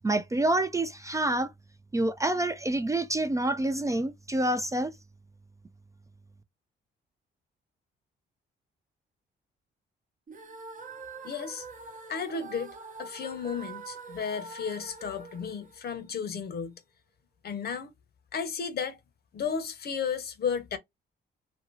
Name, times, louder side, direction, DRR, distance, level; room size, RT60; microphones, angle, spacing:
voice 1, 0.0-1.5 1.9-4.9, right 1 dB, 15° right, 0.3 m, -27 dB
sound 1, 10.3-16.4, right 4 dB, 40° right, 0.8 m, -45 dB
voice 2, 11.2-11.6 12.1-16.7 17.4-17.9 18.3-19.0 19.3-20.8, left 6 dB, 55° left, 0.7 m, -33 dB
2.9 x 2.6 x 3.1 m
cardioid pair, 90°, 20 cm